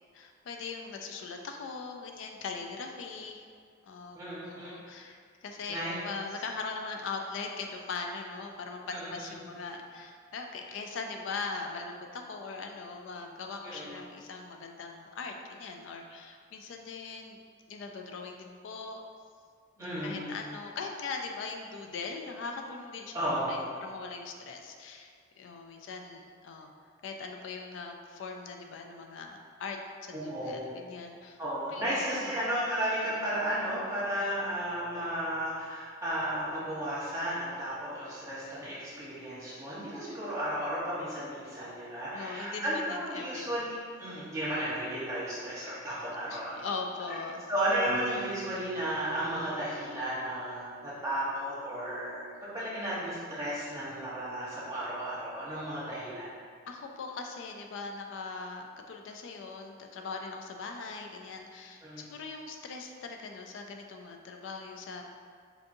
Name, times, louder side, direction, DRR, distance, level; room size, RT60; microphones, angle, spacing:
voice 1, 0.1-3.4 3.8-17.4 17.7-19.0 19.8-23.1 23.5-26.7 27.0-31.4 31.7-32.4 42.1-43.6 46.3-47.4 56.7-65.0, left 4 dB, 75° left, 3 dB, 0.3 m, -40 dB
voice 2, 4.1-4.8 5.7-6.0 8.8-9.4 13.6-14.0 19.8-20.3 23.1-23.6 30.1-30.6 31.4-46.5 47.5-56.3 61.8-62.1, equal, 15° right, -9 dB, 0.9 m, -34 dB
sound 1, 47.9-52.1, right 7 dB, 85° right, 0.4 m, -45 dB
4.5 x 2.5 x 2.6 m, 2.1 s
head